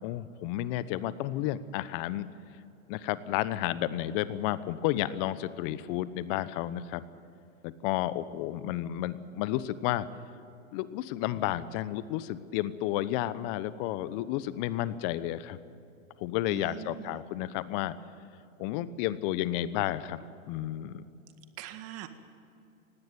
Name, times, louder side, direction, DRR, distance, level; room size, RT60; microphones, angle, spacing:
voice 1, 0.0-2.3 2.9-7.0 7.6-10.1 10.7-15.6 16.2-17.9 18.6-20.2 20.5-21.0, left 14 dB, 40° left, 16 dB, 1.0 m, -31 dB
voice 2, 16.4-17.2 21.6-22.1, right 13 dB, 35° right, 9 dB, 2.0 m, -42 dB
19.0 x 17.0 x 9.1 m, 2.7 s
hypercardioid pair, 115°, 41 cm